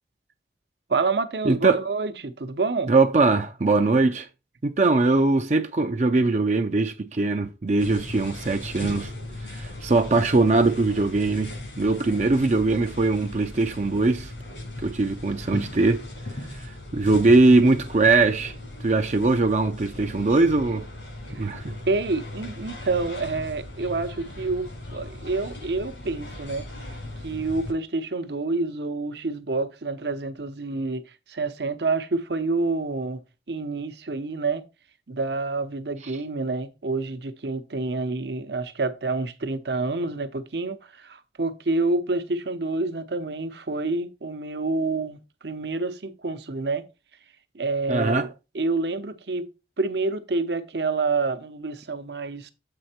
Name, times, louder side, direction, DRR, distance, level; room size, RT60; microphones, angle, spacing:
voice 1, 0.9-2.9 21.3-21.5 21.9-27.0 27.2-33.2 33.5-34.6 35.1-46.8 47.5-48.3 48.5-49.5 49.8-52.5, right 3 dB, 70° right, 0.8 m, -28 dB
voice 2, 1.4-1.8 2.9-4.3 4.6-9.1 9.5-14.3 14.8-16.0 16.9-18.5 18.8-20.8 21.4-21.7 47.9-48.3, right 3 dB, 40° right, 0.5 m, -21 dB
sound 1, 7.8-27.7, left 1 dB, 90° left, 4.8 m, -38 dB
7.8 x 4.3 x 4.3 m
head